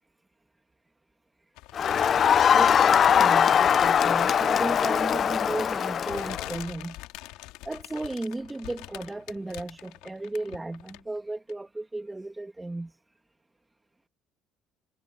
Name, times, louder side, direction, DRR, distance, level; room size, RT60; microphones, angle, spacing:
sound 1, 1.6-3.1 3.5-4.2 5.2-5.4 6.0-11.2 11.5-11.6, left 19 dB, 80° left, 2.4 m, -44 dB
Crowd, 1.7-6.6, left 8 dB, 50° left, 0.6 m, -21 dB
voice 1, 2.2-7.0 7.6-12.9, right 2 dB, 15° right, 1.4 m, -35 dB
supercardioid pair, 80°, 0 cm